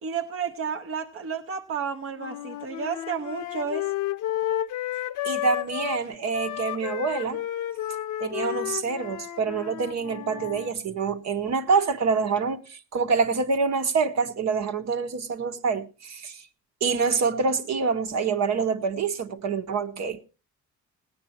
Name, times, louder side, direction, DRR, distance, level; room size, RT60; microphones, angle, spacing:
voice 1, 0.0-3.9, right 6 dB, 45° right, 0.9 m, -31 dB
sound 1, 2.2-6.0 6.3-10.7, left 14 dB, 80° left, 0.7 m, -32 dB
voice 2, 5.2-7.4 8.2-16.4 16.8-20.2, right 5 dB, 65° right, 1.2 m, -26 dB
16.5 x 9.7 x 4.3 m
cardioid pair, 90°, 30 cm